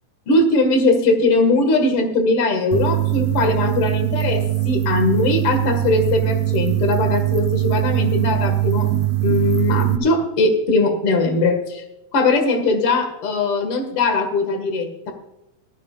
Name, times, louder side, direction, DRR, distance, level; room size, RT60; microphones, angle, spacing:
voice 1, 0.3-8.9 9.2-11.8 12.1-15.1, left 3 dB, 45° left, 6 dB, 2.4 m, -20 dB
sound 1, 2.7-10.0, right 15 dB, 75° right, 1.6 m, -21 dB
17.0 x 14.0 x 2.5 m, 0.87 s
omnidirectional pair, 4.1 m